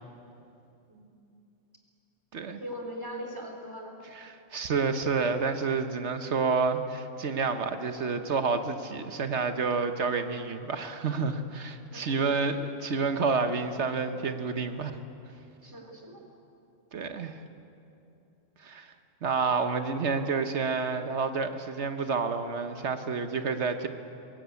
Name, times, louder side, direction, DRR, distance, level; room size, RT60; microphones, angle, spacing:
voice 1, 2.6-3.9 11.9-12.5 15.6-16.2, equal, 15° right, 0 dB, 3.4 m, -40 dB
voice 2, 4.1-14.9 16.9-17.4 18.6-18.9 19.2-23.9, right 4 dB, 65° right, 8 dB, 1.3 m, -29 dB
22.5 x 18.0 x 8.4 m, 2.7 s
omnidirectional pair, 1.3 m